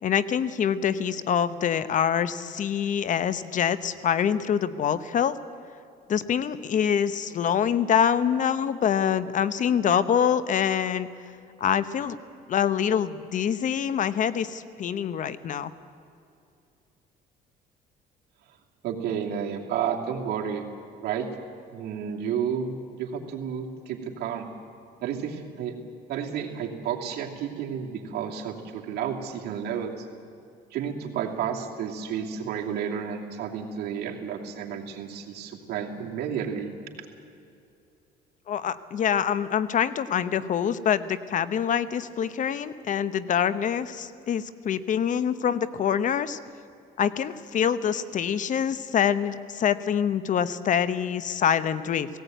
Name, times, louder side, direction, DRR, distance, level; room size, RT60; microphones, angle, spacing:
voice 1, 0.0-5.4 6.1-11.1 11.6-12.2 12.5-15.7 38.5-46.4 47.0-52.1, left 8 dB, 50° left, 15 dB, 0.8 m, -25 dB
voice 2, 18.8-20.6 21.0-21.3 21.7-24.4 25.0-25.8 26.1-30.1 30.7-36.7, right 8 dB, 75° right, 0 dB, 2.7 m, -31 dB
17.5 x 17.0 x 9.2 m, 2.5 s
cardioid pair, 110°, 17 cm